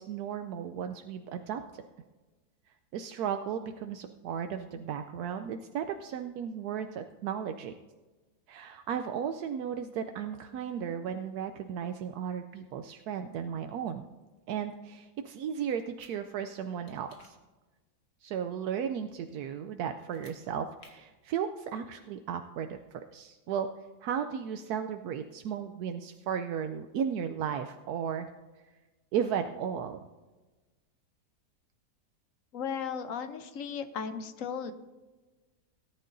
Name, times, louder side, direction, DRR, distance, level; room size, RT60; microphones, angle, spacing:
voice 1, 0.0-1.6 2.9-7.7 8.5-14.0 14.5-17.4 18.2-23.7 24.0-28.3 29.1-30.0, right 8 dB, 80° right, 7 dB, 1.1 m, -35 dB
sound 1, 15.7-16.1 16.9-17.3 20.0-20.4 20.8-20.9, left 3 dB, 85° left, 2.2 m, -57 dB
voice 2, 32.5-34.7, left 7 dB, 65° left, 9 dB, 1.1 m, -36 dB
18.0 x 10.5 x 2.6 m, 1.2 s
omnidirectional pair, 1.6 m